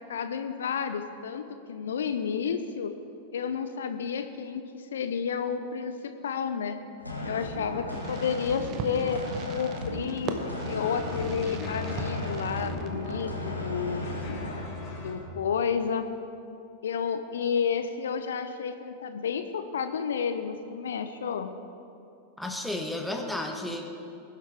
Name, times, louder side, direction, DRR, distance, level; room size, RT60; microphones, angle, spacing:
voice 1, 0.0-2.9 3.3-6.8 7.3-9.2 9.5-14.0 15.0-16.1 16.8-21.5, left 7 dB, 65° left, 9 dB, 0.6 m, -31 dB
sound 1, 7.0-14.6, left 1 dB, 85° left, 1.8 m, -36 dB
Fireworks, 7.9-13.5, right 5 dB, 35° right, 0.9 m, -40 dB
sound 2, 10.5-15.1, left 3 dB, 30° left, 2.8 m, -37 dB
voice 2, 22.4-23.8, left 1 dB, ahead, 2 dB, 1.3 m, -32 dB
20.5 x 8.3 x 3.5 m, 2.6 s
figure-of-eight pair, 90°, 0 cm